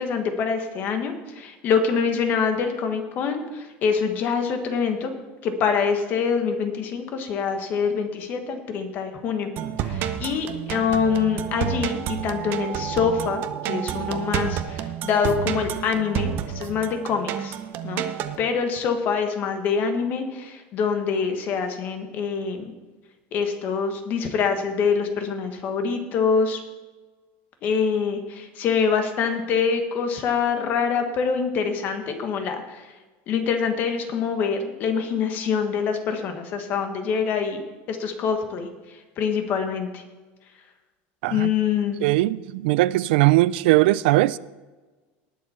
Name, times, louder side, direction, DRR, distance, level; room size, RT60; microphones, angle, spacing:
voice 1, 0.0-5.1 5.4-9.5 9.8-17.6 17.8-18.0 18.4-22.7 23.3-26.6 27.6-33.0 33.3-37.6 37.9-40.0 41.3-42.0, left 6 dB, 35° left, 1.3 m, -25 dB
sound 1, 9.6-18.4, right 10 dB, 40° right, 0.7 m, -30 dB
voice 2, 42.0-44.4, right 18 dB, 85° right, 0.4 m, -19 dB
19.0 x 7.1 x 4.3 m
cardioid pair, 175°, 5 cm